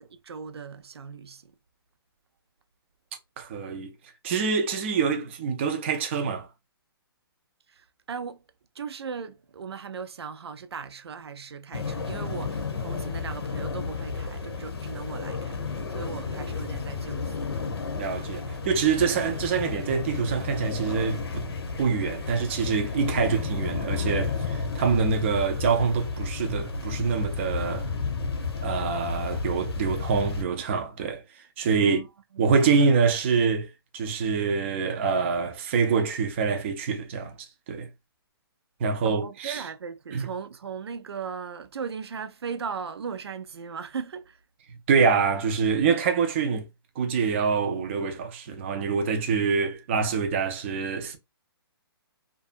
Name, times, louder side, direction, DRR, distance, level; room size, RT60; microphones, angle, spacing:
voice 1, 0.0-1.5 7.7-8.4 8.7-17.8 31.8-32.1 32.3-32.5 39.0-44.4, right 6 dB, 90° right, 0.5 m, -38 dB
voice 2, 3.4-3.9 4.2-6.5 17.9-21.5 21.8-27.9 28.6-31.2 31.6-32.0 32.4-33.7 33.9-37.4 37.7-37.9 38.8-39.6 40.1-40.3 44.9-46.7 47.0-51.2, right 5 dB, 30° right, 0.5 m, -25 dB
sound 1, 11.7-30.4, left 4 dB, 80° left, 0.8 m, -32 dB
2.6 x 2.3 x 2.5 m
hypercardioid pair, 160°, 13 cm